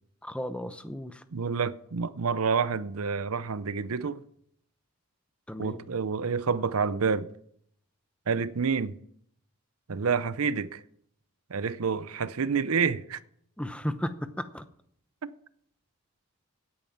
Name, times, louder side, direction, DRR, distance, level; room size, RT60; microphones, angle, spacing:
voice 1, 0.2-1.2 5.5-5.8 13.6-14.6, equal, 5° left, 0.7 m, -34 dB
voice 2, 1.3-4.2 5.6-7.3 8.3-9.0 9.9-10.8 11.5-13.2 15.2-15.3, right 5 dB, 80° right, 0.6 m, -28 dB
16.5 x 8.9 x 5.8 m
head